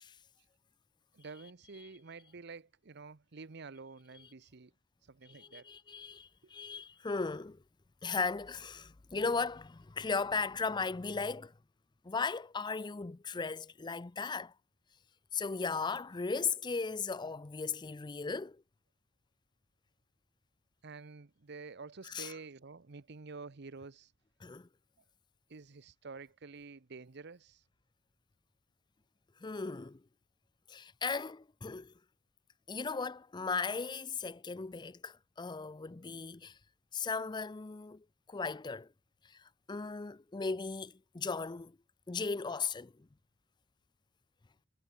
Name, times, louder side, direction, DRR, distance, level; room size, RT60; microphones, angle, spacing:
voice 1, 1.1-4.7 5.0-5.7 20.8-24.1 25.5-27.6, right 4 dB, 55° right, 0.8 m, -49 dB
voice 2, 5.2-7.6 8.0-11.5 12.0-14.5 15.3-18.6 22.0-22.3 24.4-24.7 29.4-30.0 30.7-31.9 32.7-36.6 36.9-38.9 39.2-41.8 42.1-42.9, left 4 dB, 20° left, 0.5 m, -37 dB
head